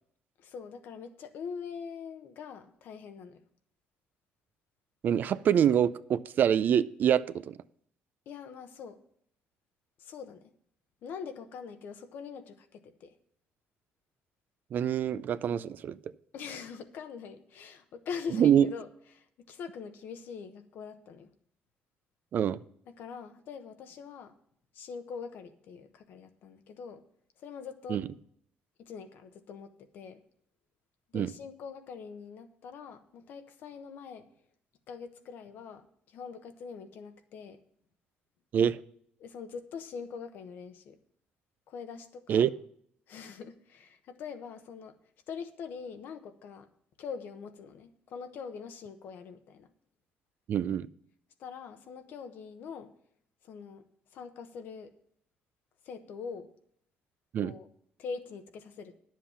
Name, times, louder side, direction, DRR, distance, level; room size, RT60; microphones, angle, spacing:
voice 1, 0.4-3.4 8.3-9.0 10.0-10.5 11.0-13.1 16.3-18.9 19.1-21.3 22.9-24.3 24.7-27.0 27.4-28.0 28.8-30.2 31.1-34.3 34.9-35.8 36.1-37.6 39.2-41.0 41.7-42.5 43.1-44.9 45.3-46.7 47.0-49.7 51.4-52.9 53.5-53.8 54.1-54.9 55.9-56.5 57.4-57.7 58.0-58.9, left 6 dB, 70° left, 8 dB, 1.1 m, -43 dB
voice 2, 5.0-7.6 14.7-16.0 18.3-18.7 22.3-22.6 27.9-28.1 31.1-31.3 38.5-38.8 42.3-42.5 50.5-50.9 57.3-57.5, right 9 dB, 60° right, 15 dB, 0.4 m, -25 dB
10.0 x 7.5 x 5.7 m, 0.66 s
supercardioid pair, 80°, 4 cm